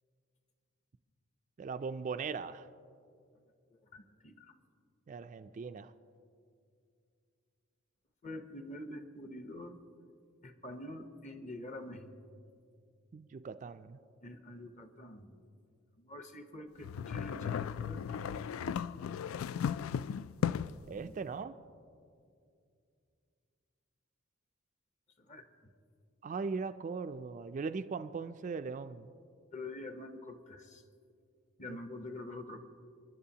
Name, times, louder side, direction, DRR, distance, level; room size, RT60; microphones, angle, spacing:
voice 1, 1.6-2.7 5.1-5.9 13.1-14.0 20.9-21.5 26.2-29.1, right 5 dB, 40° right, 10 dB, 0.3 m, -39 dB
voice 2, 3.7-4.5 8.2-9.8 10.4-12.1 14.2-15.4 16.0-18.0 21.0-21.1 25.2-25.4 29.5-30.8 31.6-32.6, left 1 dB, 35° left, 7 dB, 0.8 m, -46 dB
sound 1, 16.8-20.9, left 8 dB, 90° left, 0.3 m, -36 dB
29.0 x 11.0 x 2.8 m, 2.4 s
head